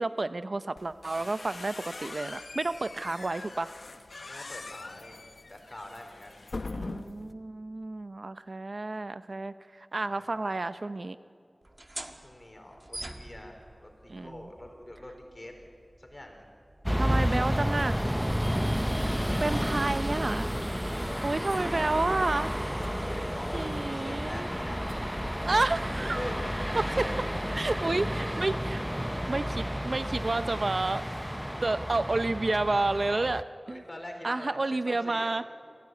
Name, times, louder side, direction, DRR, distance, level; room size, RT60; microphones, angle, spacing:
voice 1, 0.0-3.7 6.7-11.2 14.1-14.5 16.9-18.1 19.4-20.5 21.2-22.5 23.5-24.5 25.4-26.2 27.0-27.1 27.6-28.9 29.3-31.0 31.6-33.8 34.2-35.4, right 2 dB, 65° right, 12 dB, 0.7 m, -30 dB
sound 1, 0.8-7.3, left 3 dB, 85° left, 0.8 m, -42 dB
voice 2, 4.3-5.2 5.5-6.4 10.0-10.3 12.1-15.5 16.0-16.5 18.9-19.8 20.9-22.4 22.8-25.0 26.0-26.6 27.0-27.9 33.7-35.4, left 1 dB, 35° left, 3 dB, 4.6 m, -44 dB
sound 2, 11.6-18.9, right 1 dB, 40° right, 1.6 m, -47 dB
sound 3, 16.8-33.4, equal, 5° right, 0.6 m, -31 dB
27.5 x 15.5 x 9.7 m, 2.3 s
wide cardioid pair, 60°, 0 cm